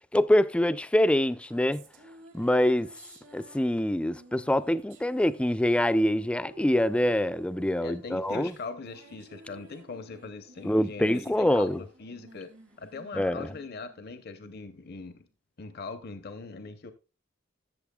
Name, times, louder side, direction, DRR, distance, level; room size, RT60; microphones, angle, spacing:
voice 1, 0.1-1.8 2.3-2.9 3.3-8.5 10.6-11.8 13.1-13.5, left 1 dB, 5° left, 0.3 m, -25 dB
sound 1, 1.2-14.9, right 2 dB, 75° right, 2.0 m, -54 dB
voice 2, 7.8-12.5 12.8-15.2 15.6-16.9, left 4 dB, 55° left, 0.7 m, -41 dB
13.5 x 7.0 x 2.3 m
head